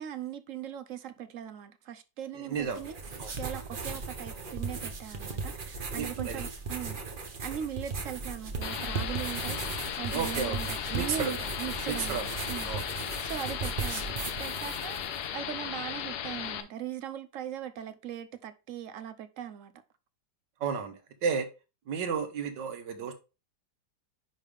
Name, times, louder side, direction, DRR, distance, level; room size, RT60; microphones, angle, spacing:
voice 1, 0.0-3.0 3.3-7.0 7.4-12.2 12.5-14.1 14.4-19.7, right 10 dB, 60° right, 0.9 m, -40 dB
voice 2, 2.3-2.8 3.2-3.3 6.0-6.5 10.1-10.6 10.9-11.3 11.9-12.3 12.6-12.8 20.6-21.5 21.9-23.1, right 6 dB, 90° right, 1.7 m, -32 dB
sound 1, 2.6-15.3, right 4 dB, 35° right, 1.0 m, -37 dB
sound 2, 8.6-16.6, left 9 dB, 70° left, 1.2 m, -36 dB
9.9 x 3.4 x 3.5 m
omnidirectional pair, 1.8 m